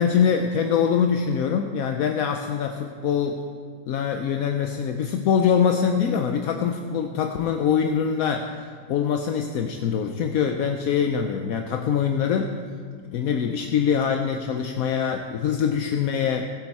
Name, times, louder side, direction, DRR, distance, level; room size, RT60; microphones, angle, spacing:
voice 1, 0.0-3.4 3.9-12.6 13.1-16.5, left 7 dB, 65° left, 5 dB, 0.9 m, -24 dB
18.5 x 8.1 x 4.1 m, 2.1 s
omnidirectional pair, 1.9 m